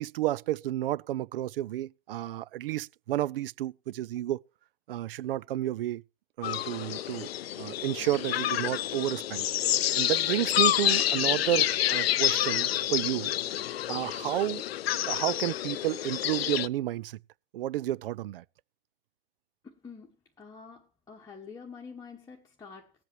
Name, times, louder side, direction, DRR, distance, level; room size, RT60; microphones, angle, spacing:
voice 1, 0.0-4.4 4.9-6.0 6.4-7.3 7.6-9.5 9.9-13.3 13.9-14.6 15.1-17.2 17.5-18.4, right 14 dB, 60° right, 0.5 m, -31 dB
sound 1, 6.4-16.7, left 12 dB, 70° left, 0.5 m, -28 dB
voice 2, 19.6-22.9, left 5 dB, 10° left, 1.1 m, -47 dB
20.0 x 7.9 x 3.1 m
hypercardioid pair, 105°, 31 cm